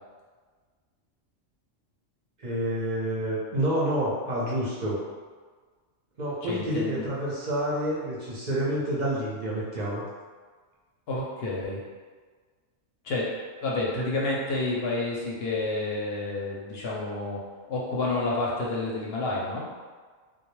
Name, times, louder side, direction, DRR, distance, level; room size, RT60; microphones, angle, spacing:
voice 1, 2.4-5.0 6.2-10.0, right 1 dB, 50° right, -7 dB, 0.6 m, -28 dB
voice 2, 6.5-7.1 11.1-11.8 13.0-13.3 13.6-17.4 17.7-19.7, left 2 dB, 60° left, -4 dB, 0.7 m, -29 dB
2.2 x 2.0 x 2.9 m, 1.5 s
omnidirectional pair, 1.3 m